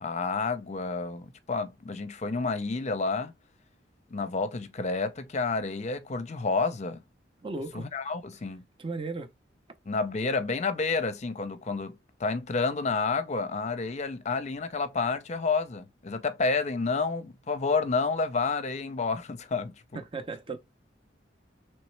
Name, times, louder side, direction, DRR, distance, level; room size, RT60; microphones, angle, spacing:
voice 1, 0.0-3.3 4.1-7.0 7.7-8.6 9.9-19.7, left 4 dB, 40° left, 0.6 m, -30 dB
voice 2, 7.4-7.9 8.8-9.3 19.9-20.6, right 3 dB, 30° right, 0.6 m, -35 dB
4.1 x 3.3 x 3.2 m
head